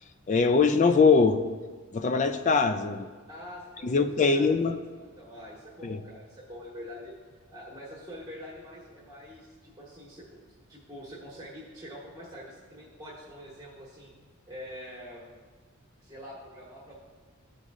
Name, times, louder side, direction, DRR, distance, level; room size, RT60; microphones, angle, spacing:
voice 1, 0.3-1.4 1.9-3.1 3.8-4.7 5.8-6.0, left 4 dB, 35° left, 9 dB, 0.4 m, -22 dB
voice 2, 3.3-4.6 4.9-7.1 7.5-14.1 14.5-15.3 16.0-17.0, equal, 15° right, -7 dB, 1.5 m, -45 dB
15.0 x 5.1 x 2.5 m, 1.4 s
head